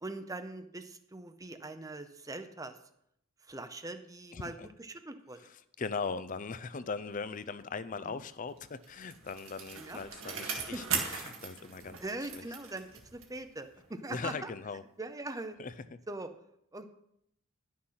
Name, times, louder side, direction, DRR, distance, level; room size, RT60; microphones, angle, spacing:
voice 1, 0.0-2.7 3.5-5.4 8.1-8.2 9.8-10.0 10.7-10.8 12.0-12.9 13.1-14.5 15.0-15.6 16.1-16.3 16.7-16.9, right 2 dB, 15° right, 9 dB, 0.7 m, -41 dB
voice 2, 4.3-4.7 5.4-12.4 14.1-14.8 15.6-15.7, left 4 dB, 40° left, 14 dB, 0.5 m, -39 dB
Bicycle, 8.6-13.5 13.8-13.9, right 6 dB, 75° right, 1.8 m, -39 dB
11.0 x 6.5 x 5.7 m, 0.75 s
head